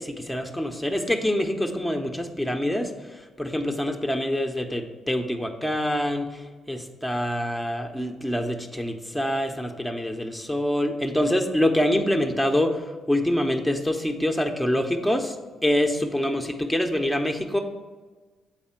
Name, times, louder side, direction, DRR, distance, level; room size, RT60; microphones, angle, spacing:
voice 1, 0.0-2.9 3.4-6.3 6.7-12.8 13.1-15.4 15.6-17.6, left 1 dB, ahead, 3 dB, 0.8 m, -25 dB
8.1 x 4.2 x 5.7 m, 1.3 s
cardioid pair, 90°, 0 cm